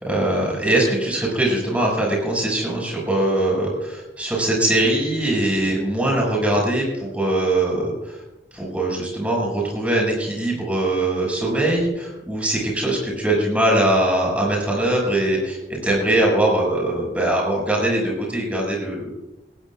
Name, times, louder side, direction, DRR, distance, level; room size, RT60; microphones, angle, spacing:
voice 1, 0.0-8.2 8.5-19.1, right 1 dB, 10° right, -2 dB, 6.2 m, -21 dB
20.0 x 17.0 x 2.5 m, 0.98 s
head